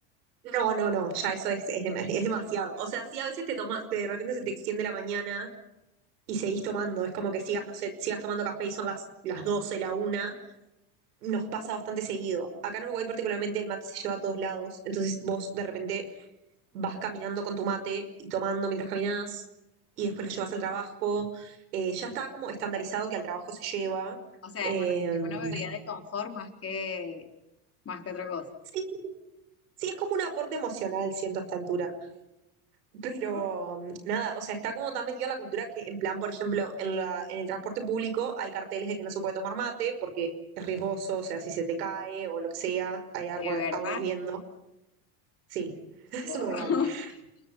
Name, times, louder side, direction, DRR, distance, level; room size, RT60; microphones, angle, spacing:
voice 1, 0.4-5.5 6.3-10.3 11.2-16.1 16.7-19.4 20.0-24.2 24.6-25.6 28.7-29.0 29.8-31.9 33.0-40.3 40.6-44.4 45.5-45.8 46.1-47.1, right 6 dB, 90° right, 8 dB, 5.6 m, -32 dB
voice 2, 24.4-25.0 25.2-27.3 27.8-28.5 33.3-33.5 43.4-44.1 46.2-47.2, left 6 dB, 30° left, 4 dB, 4.2 m, -34 dB
29.5 x 21.5 x 5.8 m, 0.89 s
supercardioid pair, 100°, 46 cm